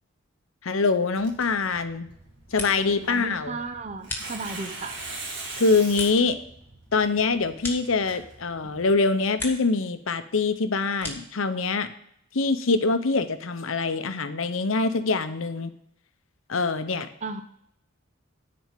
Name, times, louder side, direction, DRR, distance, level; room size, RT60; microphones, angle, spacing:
voice 1, 0.6-2.1 2.5-3.6 5.6-6.4 6.9-11.9 12.3-15.7 16.5-17.1, left 4 dB, 70° left, 10 dB, 0.8 m, -24 dB
Tearing, 1.2-8.9, right 2 dB, 55° right, 2.4 m, -41 dB
sound 1, 2.2-3.1 3.4-4.8 5.2-8.5 8.9-9.8 10.1-11.4, left 2 dB, 10° left, 1.6 m, -39 dB
voice 2, 3.1-5.0 8.6-8.7 17.2-17.4, right 3 dB, 30° right, 7 dB, 0.6 m, -34 dB
10.5 x 4.3 x 7.5 m, 0.71 s
head